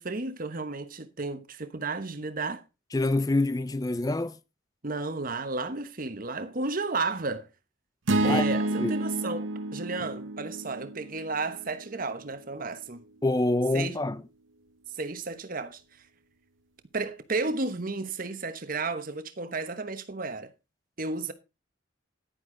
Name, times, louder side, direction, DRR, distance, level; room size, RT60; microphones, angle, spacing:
voice 1, 0.0-2.6 4.8-7.5 8.2-13.0 13.7-14.0 14.9-15.8 16.9-20.5 21.0-21.3, right 3 dB, 45° right, 1.1 m, -33 dB
voice 2, 2.9-4.4 8.2-8.4 8.8-8.9 10.0-10.1 13.2-14.2, left 2 dB, 20° left, 0.4 m, -26 dB
sound 1, 8.1-12.3, right 2 dB, 70° right, 0.9 m, -30 dB
10.5 x 9.6 x 3.8 m
head